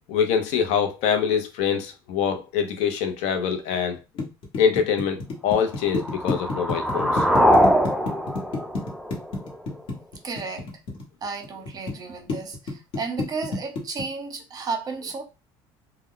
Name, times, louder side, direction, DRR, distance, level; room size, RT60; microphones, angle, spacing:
voice 1, 0.1-4.0 4.6-7.3, left 7 dB, 70° left, 0.7 m, -24 dB
sound 1, 3.7-11.9 12.3-14.0, left 3 dB, 50° left, 1.1 m, -29 dB
sound 2, 5.8-9.8, equal, ahead, 0.3 m, -22 dB
voice 2, 10.2-10.7 11.2-15.2, right 4 dB, 35° right, 0.8 m, -33 dB
2.2 x 2.2 x 3.6 m
supercardioid pair, 110°, 12 cm